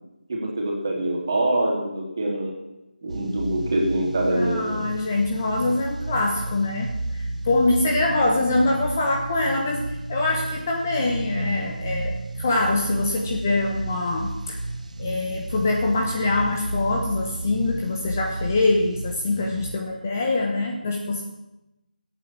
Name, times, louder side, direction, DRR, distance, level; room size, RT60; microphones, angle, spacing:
voice 1, 0.3-2.5 3.0-4.8, right 1 dB, 25° right, -1 dB, 3.0 m, -24 dB
sound 1, 3.1-19.8, right 2 dB, 50° right, 1.4 m, -32 dB
voice 2, 4.3-14.6 15.0-21.3, left 2 dB, 15° left, 0 dB, 0.9 m, -24 dB
16.5 x 8.8 x 7.5 m, 0.95 s
figure-of-eight pair, 175°, 5 cm